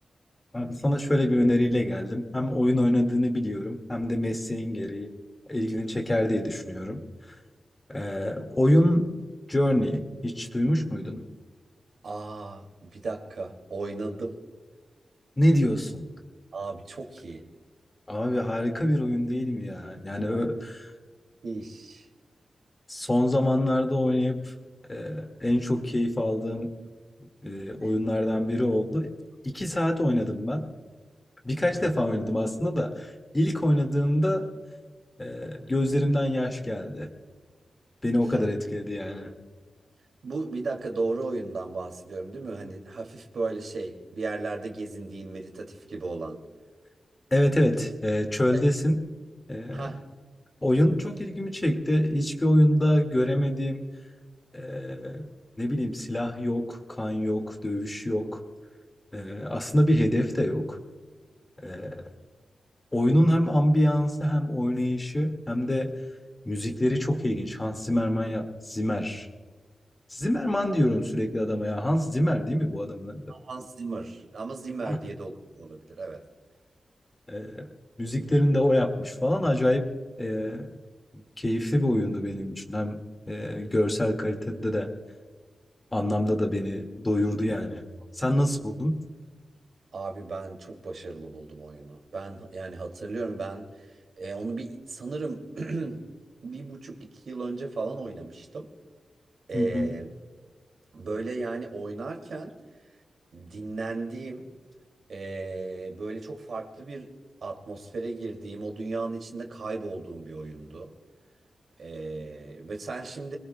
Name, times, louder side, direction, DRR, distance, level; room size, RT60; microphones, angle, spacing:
voice 1, 0.5-5.1 5.5-7.0 7.9-9.1 9.5-11.2 15.4-16.1 18.1-20.9 22.9-24.5 24.9-26.7 27.4-29.1 29.4-30.6 31.4-34.5 35.2-37.1 38.0-39.4 47.3-49.0 49.5-50.0 50.6-53.8 54.5-55.3 55.6-58.4 59.1-60.8 61.6-62.0 62.9-65.9 66.5-69.3 70.1-73.3 74.8-75.0 77.3-77.7 78.0-79.9 80.2-80.7 81.4-84.9 85.9-87.8 88.1-89.0 99.5-100.0, left 1 dB, 20° left, 4 dB, 1.9 m, -25 dB
voice 2, 12.0-14.4 16.5-17.5 20.3-20.5 21.4-22.1 27.8-27.9 31.7-32.0 38.3-38.5 40.2-46.4 48.5-48.6 49.7-50.0 73.3-76.3 89.9-93.9 94.2-96.0 96.4-98.7 99.5-100.1 100.9-102.6 103.3-104.5 105.1-107.1 107.4-110.9 111.8-113.4, right 3 dB, 70° right, 3 dB, 2.3 m, -35 dB
25.5 x 21.0 x 2.2 m, 1.4 s
wide cardioid pair, 85°, 0 cm